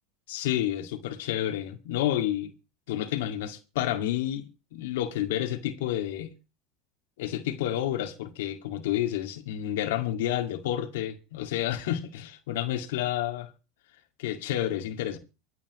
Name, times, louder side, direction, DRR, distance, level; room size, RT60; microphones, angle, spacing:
voice 1, 0.3-2.5 2.9-6.3 7.2-13.5 14.2-15.2, left 12 dB, 80° left, 2.0 m, -30 dB
25.5 x 8.5 x 3.1 m
supercardioid pair, 110°, 0 cm